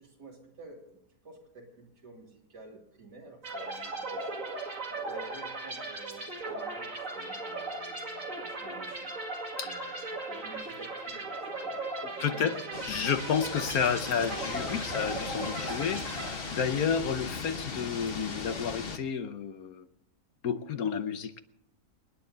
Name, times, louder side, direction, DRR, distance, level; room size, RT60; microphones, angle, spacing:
voice 1, 0.0-4.4 5.1-9.1 9.6-12.5 16.5-16.8, right 2 dB, 75° right, 3.6 m, -50 dB
sound 1, 3.4-17.0, right 2 dB, 50° right, 2.5 m, -38 dB
voice 2, 9.6-9.9 12.2-12.6 12.8-19.9 20.4-21.4, left 7 dB, 65° left, 1.2 m, -31 dB
sound 2, 12.7-19.0, left 4 dB, 40° left, 1.1 m, -38 dB
28.0 x 9.7 x 4.0 m
omnidirectional pair, 1.8 m